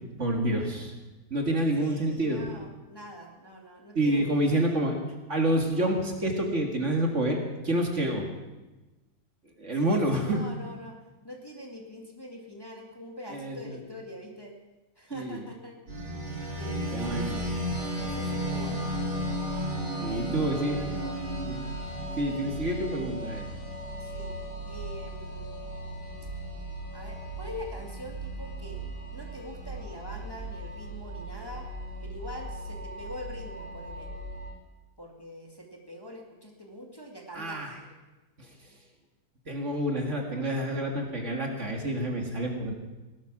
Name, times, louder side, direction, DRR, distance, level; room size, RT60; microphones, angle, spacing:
voice 1, 0.2-0.9 1.3-2.4 4.0-5.0 5.3-8.3 9.6-10.4 13.3-13.8 15.1-15.4 16.9-17.4 20.0-21.0 21.5-21.6 22.2-23.5 37.3-37.7 38.4-38.5 39.5-42.7, right 1 dB, 45° right, 2 dB, 2.2 m, -28 dB
voice 2, 1.7-4.8 9.7-11.0 11.2-14.6 15.0-15.8 16.6-17.6 18.0-18.9 20.1-21.4 24.0-25.6 26.9-28.8 29.1-31.7 32.0-34.1 35.0-37.8, left 1 dB, 15° left, 0 dB, 2.0 m, -44 dB
sound 1, 15.9-34.5, equal, 80° right, 4.8 m, -35 dB
18.0 x 12.5 x 6.0 m, 1.1 s
omnidirectional pair, 1.8 m